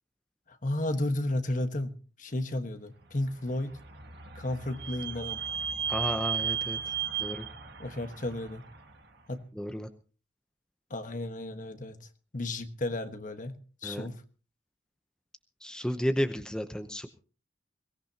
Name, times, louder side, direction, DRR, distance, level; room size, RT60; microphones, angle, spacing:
voice 1, 0.5-1.9 2.2-3.7 4.3-5.4 7.8-8.6 9.3-9.4 10.9-12.1 12.3-13.6 13.8-14.1, left 1 dB, 45° left, 8 dB, 1.4 m, -33 dB
Vehicle / Squeak, 3.4-9.0, right 8 dB, 60° right, 1.8 m, -35 dB
voice 2, 5.9-6.9 7.2-7.5 9.5-9.9 13.8-14.1 15.6-17.1, equal, 5° left, 7 dB, 0.8 m, -32 dB
22.5 x 18.0 x 2.9 m, 0.38 s
head